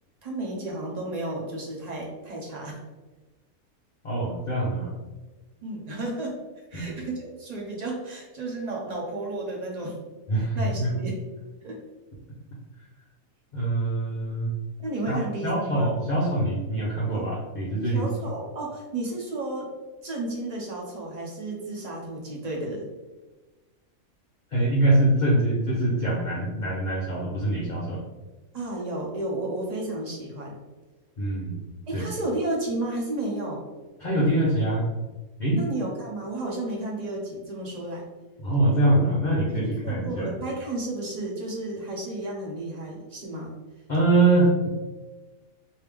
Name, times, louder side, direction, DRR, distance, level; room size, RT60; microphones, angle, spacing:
voice 1, 0.2-2.8 5.6-6.4 6.7-10.0 10.3-11.3 11.6-11.8 14.8-15.9 17.1-17.2 17.9-19.7 20.0-22.9 28.5-30.6 31.9-33.6 35.6-38.1 39.5-43.5, right 2 dB, 35° right, -2 dB, 0.7 m, -32 dB
voice 2, 4.0-4.9 6.7-6.9 10.3-10.9 13.5-14.5 15.1-18.1 24.5-28.0 31.2-31.6 31.9-32.1 34.0-34.9 35.4-35.6 38.4-40.3 43.9-44.7, right 2 dB, 45° left, -5 dB, 0.6 m, -24 dB
3.3 x 2.8 x 3.3 m, 1.2 s
omnidirectional pair, 1.5 m